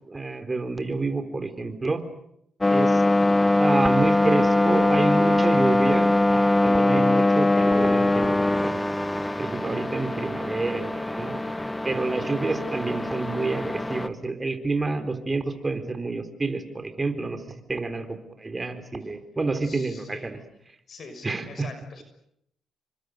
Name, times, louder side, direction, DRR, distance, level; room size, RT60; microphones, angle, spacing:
voice 1, 0.1-2.0 2.7-3.0 3.6-8.4 8.6-8.8 9.2-11.4 11.8-17.4 17.7-20.4 21.2-21.7, right 3 dB, 25° right, 8 dB, 4.1 m, -28 dB
sound 1, 2.6-14.1, left 2 dB, 15° left, 1.4 m, -22 dB
voice 2, 19.6-20.4 20.9-22.0, left 4 dB, 50° left, 8 dB, 6.2 m, -43 dB
29.5 x 25.0 x 6.8 m, 0.74 s
cardioid pair, 90°, 0 cm